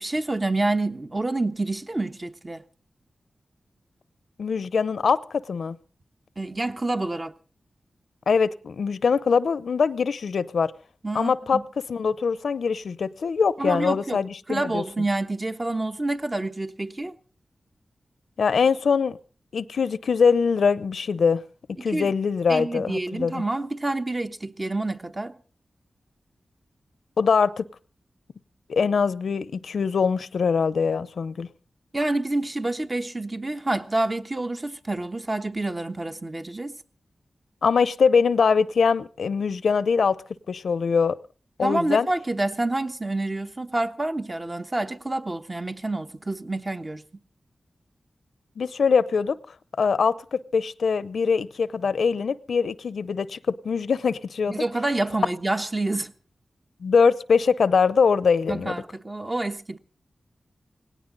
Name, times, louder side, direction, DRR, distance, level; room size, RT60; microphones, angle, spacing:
voice 1, 0.0-2.6 6.4-7.3 11.0-11.6 13.6-14.2 14.5-17.1 21.8-22.1 22.5-25.4 31.9-36.8 41.6-47.0 54.5-56.1 58.5-59.8, right 2 dB, 30° right, 1.2 m, -28 dB
voice 2, 4.4-5.8 8.3-10.7 11.1-11.6 11.9-14.8 18.4-19.2 19.5-21.4 21.8-23.4 27.2-27.6 28.7-31.5 37.6-41.2 41.6-42.1 48.6-49.4 49.8-53.4 53.6-54.6 56.8-58.8, left 5 dB, 90° left, 0.7 m, -22 dB
18.5 x 17.5 x 4.0 m
wide cardioid pair, 70°, 0 cm